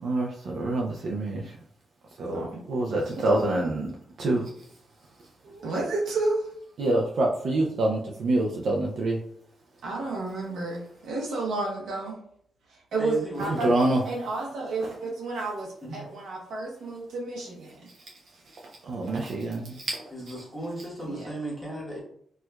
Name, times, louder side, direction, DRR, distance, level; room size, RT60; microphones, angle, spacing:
voice 1, 0.0-1.5 2.2-4.5 6.8-9.2 13.5-14.0 18.5-20.0, right 2 dB, 65° right, -1 dB, 0.4 m, -26 dB
voice 2, 5.4-6.5 9.8-12.2 12.9-13.6 14.0-17.9 21.1-21.3, right 3 dB, 85° right, -2 dB, 0.8 m, -31 dB
voice 3, 13.0-13.8 15.8-16.0 20.1-22.0, right 1 dB, ahead, -5 dB, 1.1 m, -35 dB
4.4 x 2.3 x 2.2 m, 0.65 s
wide cardioid pair, 140°, 0 cm